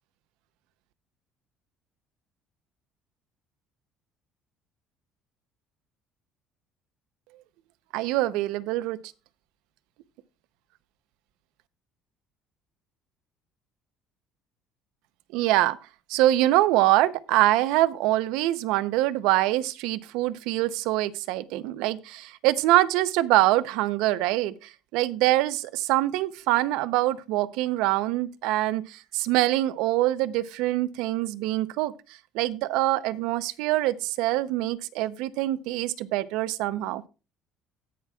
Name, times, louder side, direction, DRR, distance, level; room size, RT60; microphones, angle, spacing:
voice 1, 7.9-9.0 15.3-15.8 16.1-24.5 24.9-31.9 32.3-37.1, right 16 dB, 85° right, 0.6 m, -24 dB
17.5 x 6.0 x 2.3 m
cardioid pair, 145°, 0 cm